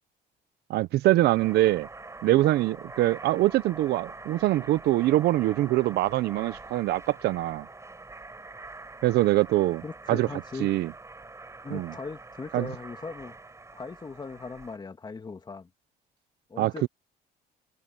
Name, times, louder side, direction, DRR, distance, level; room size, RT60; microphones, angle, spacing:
voice 1, 0.7-1.9 2.2-7.7 9.0-9.8 10.1-10.3 10.6-10.9 11.7-11.9 12.5-12.7 16.6-16.9, right 16 dB, 75° right, 0.8 m, -24 dB
sound 1, 1.1-14.8, right 3 dB, 15° right, 6.4 m, -45 dB
voice 2, 9.8-10.7 11.6-13.4 13.7-15.7 16.5-16.9, left 4 dB, 25° left, 2.5 m, -39 dB
cardioid pair, 110°, 17 cm